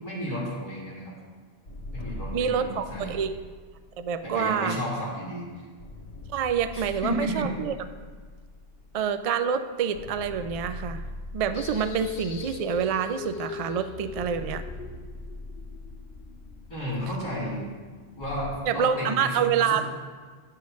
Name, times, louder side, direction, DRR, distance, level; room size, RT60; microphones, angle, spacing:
voice 1, 0.0-1.1 1.9-3.2 4.2-5.5 6.7-7.5 16.7-17.6 18.1-19.8, equal, 15° left, -9 dB, 2.2 m, -32 dB
sound 1, 1.7-5.2 5.8-9.6 9.9-13.6 14.1-18.5, left 2 dB, 85° left, 1.3 m, -42 dB
voice 2, 2.3-3.3 4.0-4.8 6.3-7.7 8.9-11.0 11.3-14.6 18.7-19.8, right 7 dB, 70° right, 10 dB, 0.3 m, -27 dB
sound 2, 11.5-18.6, left 6 dB, 60° left, 0.8 m, -41 dB
9.8 x 7.6 x 3.1 m, 1.6 s
omnidirectional pair, 1.1 m